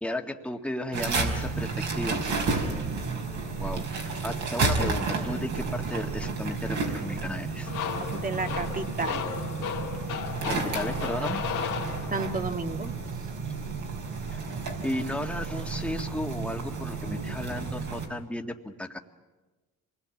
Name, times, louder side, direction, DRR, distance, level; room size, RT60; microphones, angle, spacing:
voice 1, 0.0-2.3 2.5-2.7 3.6-7.7 10.4-11.5 14.3-14.4 14.8-19.0, left 1 dB, 5° left, 3 dB, 2.0 m, -34 dB
sound 1, 0.9-18.1, right 4 dB, 70° right, 5.0 m, -31 dB
sound 2, 7.7-12.5, left 8 dB, 80° left, 2.4 m, -34 dB
voice 2, 8.0-9.4 12.1-12.9, right 3 dB, 30° right, 6 dB, 1.9 m, -32 dB
27.0 x 21.0 x 8.5 m, 1.2 s
cardioid pair, 90°, 30 cm